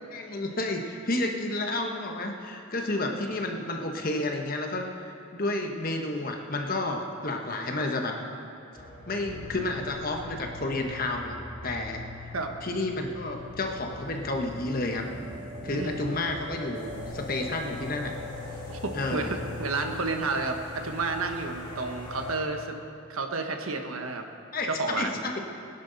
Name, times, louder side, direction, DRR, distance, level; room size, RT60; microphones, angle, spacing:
voice 1, 0.1-4.9 5.3-8.2 9.1-11.4 11.6-12.0 12.6-15.1 15.6-18.1 18.9-19.4 24.5-24.7 25.0-25.3, left 2 dB, 45° left, 3 dB, 1.3 m, -31 dB
sound 1, 8.8-22.4, left 2 dB, 20° left, 3.9 m, -41 dB
voice 2, 15.7-16.0 18.7-22.7 23.1-24.2 24.7-25.2, right 3 dB, 85° right, 5 dB, 1.3 m, -31 dB
22.0 x 10.5 x 4.1 m, 2.7 s
head